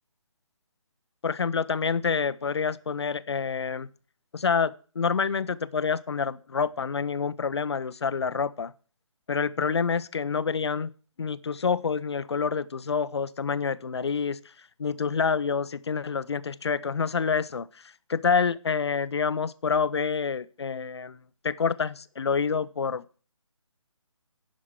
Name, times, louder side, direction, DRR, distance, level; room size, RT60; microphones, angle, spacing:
voice 1, 1.2-3.9 4.3-8.7 9.3-10.9 11.2-14.4 14.8-17.8 18.1-23.2, left 5 dB, 55° left, 16 dB, 0.7 m, -27 dB
10.5 x 6.1 x 7.8 m, 0.39 s
figure-of-eight pair, 150°, 17 cm